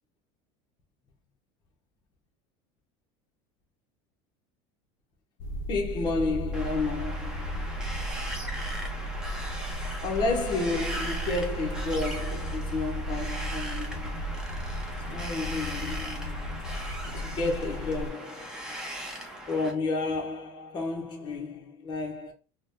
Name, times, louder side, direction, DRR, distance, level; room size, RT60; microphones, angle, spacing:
sound 1, 5.4-18.1, equal, 65° left, 0.5 m, -35 dB
voice 1, 5.7-7.7 10.0-14.2 15.1-16.5 17.2-18.8 19.5-22.3, left 3 dB, 30° left, 0.8 m, -31 dB
Wind, 6.5-19.7, equal, 5° right, 0.7 m, -39 dB
4.9 x 2.1 x 2.5 m
supercardioid pair, 140°, 14 cm